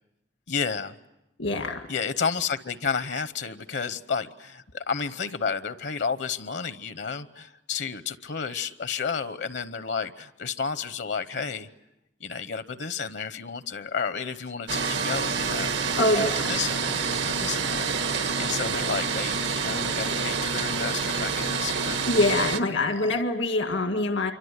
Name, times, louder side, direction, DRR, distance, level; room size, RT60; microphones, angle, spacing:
voice 1, 0.5-0.9 1.9-11.7 12.2-16.2 16.5-22.1 23.0-23.2, left 6 dB, 70° left, 12 dB, 0.9 m, -32 dB
voice 2, 1.4-1.8 15.7-16.5 22.1-24.3, left 2 dB, 85° left, 5 dB, 1.9 m, -25 dB
sound 1, 14.7-22.6, right 5 dB, 75° right, 1.5 m, -27 dB
27.5 x 24.5 x 8.2 m, 0.92 s
head